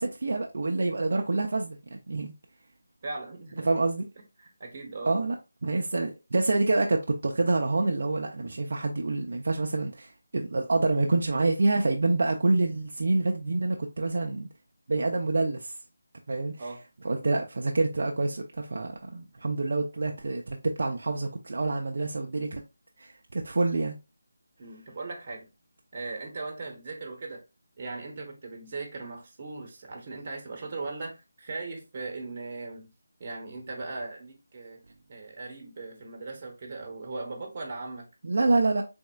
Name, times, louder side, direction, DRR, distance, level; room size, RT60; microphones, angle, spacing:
voice 1, 0.0-2.3 3.6-4.1 5.1-5.4 5.6-14.5 14.9-15.8 16.3-16.7 17.0-22.6 23.0-24.0 38.2-38.8, right 2 dB, 60° right, 0.5 m, -27 dB
voice 2, 3.0-3.7 4.4-5.1 16.6-16.8 24.6-25.5 25.9-27.4 27.8-32.9 33.2-34.8 35.1-38.1, right 3 dB, 35° right, 1.1 m, -38 dB
4.0 x 3.6 x 2.2 m
figure-of-eight pair, 165°, 0 cm